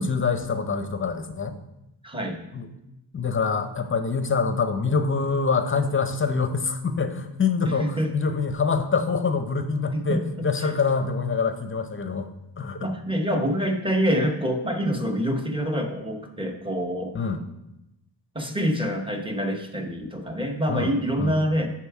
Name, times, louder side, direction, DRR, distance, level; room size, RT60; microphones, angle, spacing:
voice 1, 0.0-1.6 2.5-2.7 3.1-12.3 12.6-12.9 17.1-17.4 20.7-21.4, left 5 dB, 30° left, 8 dB, 0.6 m, -25 dB
voice 2, 2.0-2.4 7.6-8.1 9.9-10.7 12.8-17.1 18.3-21.7, equal, 10° right, 3 dB, 0.8 m, -26 dB
6.9 x 4.8 x 4.7 m, 0.91 s
wide cardioid pair, 135°, 44 cm